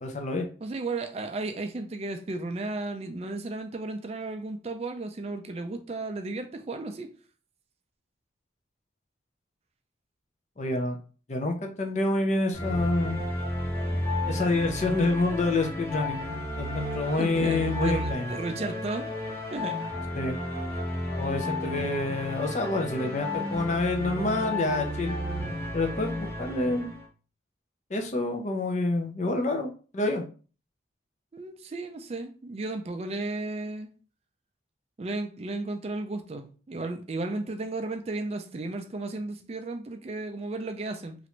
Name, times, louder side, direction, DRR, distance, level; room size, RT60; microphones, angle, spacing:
voice 1, 0.0-0.5 10.6-11.0 11.3-13.2 14.3-16.2 16.6-18.3 20.1-20.4 21.2-25.2 25.7-26.9 27.9-30.2, left 2 dB, 40° left, 0.5 m, -28 dB
voice 2, 0.6-7.1 17.2-19.1 19.5-19.8 22.0-22.2 31.3-33.9 35.0-41.2, right 2 dB, 35° right, 0.4 m, -34 dB
sound 1, 12.5-27.0, left 1 dB, 15° left, 0.8 m, -32 dB
3.2 x 2.5 x 2.9 m
head